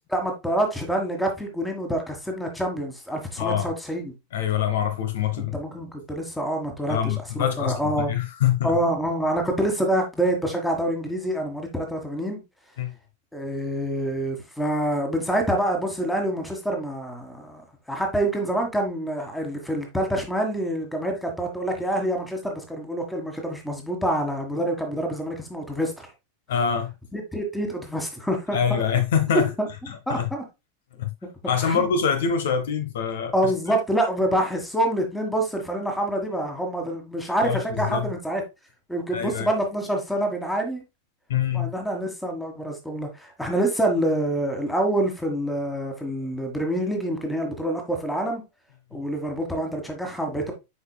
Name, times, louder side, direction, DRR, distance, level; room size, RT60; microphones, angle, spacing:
voice 1, 0.1-4.1 5.4-8.1 8.6-12.4 13.3-17.6 17.9-26.1 27.1-28.8 29.6-29.7 30.1-30.4 31.5-31.8 33.3-38.4 38.9-40.8 41.5-48.4 48.9-50.5, right 1 dB, 5° left, 1.7 m, -26 dB
voice 2, 3.4-3.7 4.3-5.5 6.9-8.7 12.8-12.9 26.5-26.9 28.5-29.5 29.9-30.3 31.0-31.1 31.5-33.3 37.4-38.1 39.1-39.5 41.3-41.7, left 8 dB, 60° left, 0.8 m, -24 dB
8.0 x 5.1 x 2.3 m
figure-of-eight pair, 90°, 0 cm